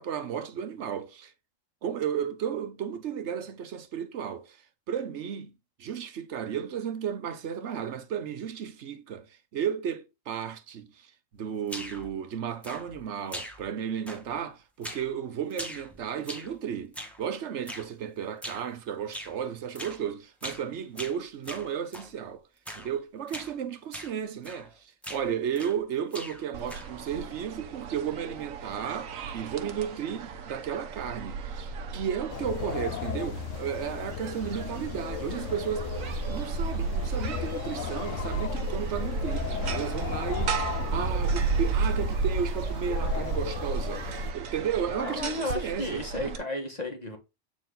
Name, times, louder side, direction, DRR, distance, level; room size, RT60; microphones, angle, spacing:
voice 1, 0.0-1.3 1.8-5.5 5.8-22.4 22.7-40.6 40.9-46.4, right 8 dB, 60° right, 1.1 m, -34 dB
sound 1, 11.7-12.1 12.6-13.0 13.3-13.8 14.1-14.4 14.8-15.1 15.5-16.6 16.9-17.2 17.7-17.9 18.4-18.7 19.1-19.4 19.7-20.0 20.4-20.7 21.0-22.1 22.6-22.9 23.3-23.5 23.9-24.1 24.4-24.7 25.0-25.8 26.1-27.0, equal, ahead, 1.5 m, -41 dB
sound 2, 26.5-46.4, right 4 dB, 85° right, 1.3 m, -33 dB
sound 3, 32.3-44.3, left 10 dB, 70° left, 0.9 m, -36 dB
voice 2, 44.9-47.2, left 2 dB, 30° left, 1.8 m, -33 dB
8.3 x 4.4 x 3.9 m
omnidirectional pair, 1.4 m